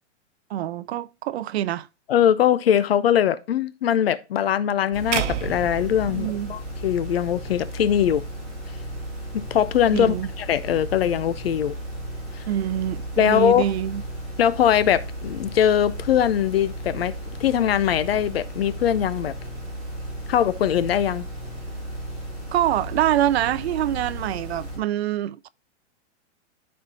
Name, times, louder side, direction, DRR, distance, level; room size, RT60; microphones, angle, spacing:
voice 1, 0.5-1.9 6.1-6.6 9.9-10.3 12.5-14.0 22.5-25.5, right 12 dB, 65° right, 0.5 m, -25 dB
voice 2, 2.1-8.2 9.3-11.8 12.3-12.4 13.2-13.7 14.4-17.1 17.4-19.3 20.3-21.3, left 10 dB, 60° left, 0.6 m, -21 dB
sound 1, 4.9-24.8, right 1 dB, ahead, 3.4 m, -35 dB
sound 2, 5.1-7.4, right 9 dB, 90° right, 1.0 m, -31 dB
13.0 x 4.4 x 2.7 m
supercardioid pair, 180°, 35 cm